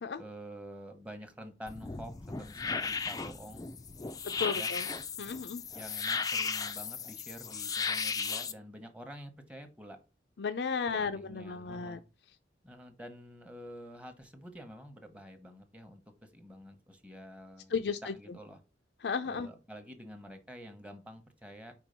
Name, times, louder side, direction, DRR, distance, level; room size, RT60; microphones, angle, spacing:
voice 1, 0.2-3.7 4.5-4.7 5.7-10.0 10.9-12.0 12.6-17.7 18.1-18.6 19.2-21.7, equal, 5° right, 1.0 m, -48 dB
sound 1, 1.7-8.5, left 5 dB, 20° left, 0.4 m, -35 dB
voice 2, 4.2-4.9 5.2-5.6 10.4-12.0 17.7-18.1 19.0-19.5, left 5 dB, 75° left, 0.5 m, -34 dB
4.9 x 4.5 x 5.1 m
head